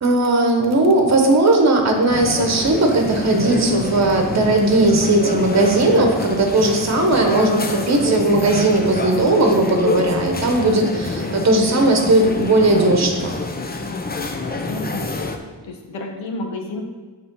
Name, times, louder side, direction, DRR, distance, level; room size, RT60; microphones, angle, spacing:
voice 1, 0.0-13.3, right 2 dB, 35° right, 3 dB, 1.2 m, -17 dB
sound 1, 2.1-15.4, left 3 dB, 20° left, 0.6 m, -27 dB
voice 2, 14.6-15.2 15.6-16.8, left 2 dB, 90° left, 2 dB, 1.1 m, -30 dB
8.7 x 3.4 x 5.4 m, 1.4 s
wide cardioid pair, 110°, 45 cm